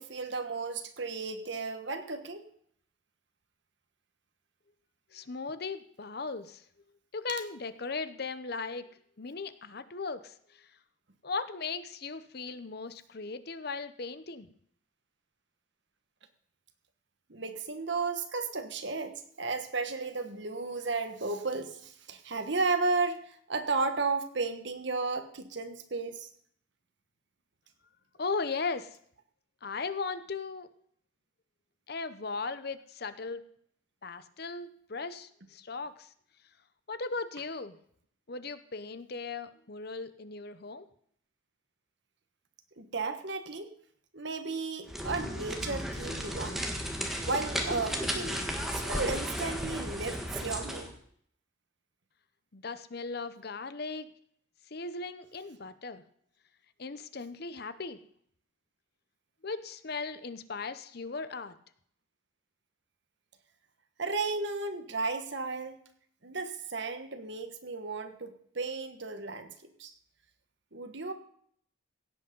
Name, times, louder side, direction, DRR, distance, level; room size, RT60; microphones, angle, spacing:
voice 1, 0.0-2.5 17.3-26.3 42.8-43.7 44.1-46.6 47.2-48.4 48.7-50.9 64.0-65.7 66.2-69.5 69.8-69.9 70.7-71.1, right 3 dB, 60° right, 8 dB, 1.4 m, -34 dB
voice 2, 5.1-6.6 7.1-10.7 11.2-14.5 28.2-29.0 29.6-30.7 31.9-33.4 34.0-36.1 36.9-37.8 38.3-40.9 52.5-54.1 54.7-56.0 56.8-58.0 59.4-61.6, left 4 dB, 50° left, 12 dB, 0.8 m, -37 dB
sound 1, 44.9-50.9, equal, ahead, 1.5 m, -34 dB
16.5 x 8.1 x 5.3 m, 0.64 s
head